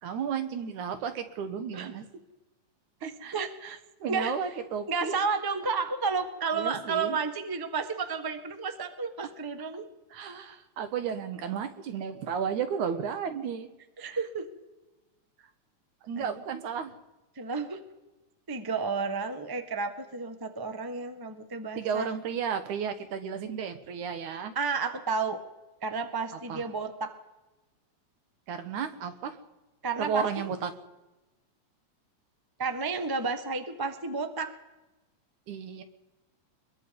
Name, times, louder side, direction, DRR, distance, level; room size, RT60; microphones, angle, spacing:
voice 1, 0.0-2.1 3.0-5.3 6.5-7.2 10.1-13.7 14.0-14.2 16.0-16.9 21.7-24.6 26.3-26.6 28.5-29.4 30.0-30.7 35.5-35.8, right 7 dB, 80° right, 2.8 m, -33 dB
voice 2, 3.0-3.5 4.1-4.3 4.9-9.9 14.0-14.4 16.2-16.4 17.3-17.8 18.5-22.1 24.5-25.4 25.8-27.1 29.8-30.3 32.6-34.5, right 4 dB, 15° right, 0.7 m, -31 dB
23.5 x 21.5 x 5.4 m
omnidirectional pair, 3.4 m